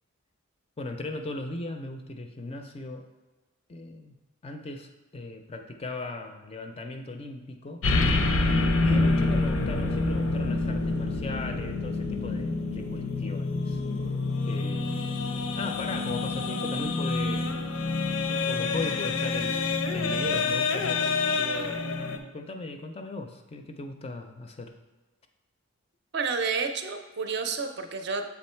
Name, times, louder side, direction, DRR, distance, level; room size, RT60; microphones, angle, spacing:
voice 1, 0.8-3.1 3.7-4.2 4.4-7.9 8.8-13.8 14.4-14.9 15.5-17.7 18.3-21.0 21.4-21.8 22.3-24.7, left 2 dB, 25° left, 6 dB, 0.4 m, -38 dB
sound 1, 7.8-22.2, left 3 dB, 80° left, 0.6 m, -27 dB
voice 2, 26.1-28.2, right 5 dB, 50° right, 6 dB, 0.5 m, -30 dB
7.0 x 3.7 x 4.3 m, 1.2 s
head